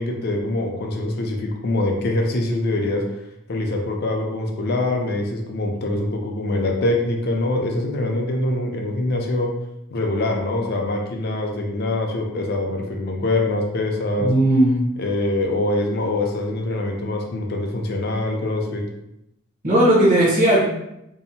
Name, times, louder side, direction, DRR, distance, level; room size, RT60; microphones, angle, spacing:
voice 1, 0.0-3.0 3.5-9.5 9.9-14.3 15.0-18.8, left 2 dB, 50° left, 1 dB, 0.4 m, -24 dB
voice 2, 14.2-14.8 19.6-20.6, right 1 dB, 40° right, -6 dB, 0.7 m, -16 dB
2.7 x 2.0 x 2.7 m, 0.84 s
head